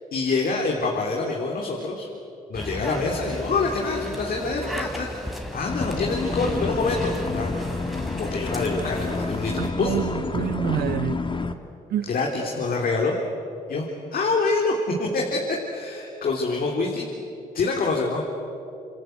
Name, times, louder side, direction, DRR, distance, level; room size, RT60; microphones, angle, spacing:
voice 1, 0.1-2.1 2.5-7.5 8.2-10.0 12.1-13.2 13.7-17.1 17.5-18.2, left 3 dB, 65° left, 3.6 m, -26 dB
sound 1, 2.5-9.7, equal, ahead, 3.8 m, -35 dB
sound 2, 5.6-11.5, left 3 dB, 30° left, 2.2 m, -29 dB
voice 2, 9.6-11.2 11.9-12.1, right 12 dB, 75° right, 0.6 m, -27 dB
28.0 x 26.5 x 8.0 m
supercardioid pair, 60°, 16 cm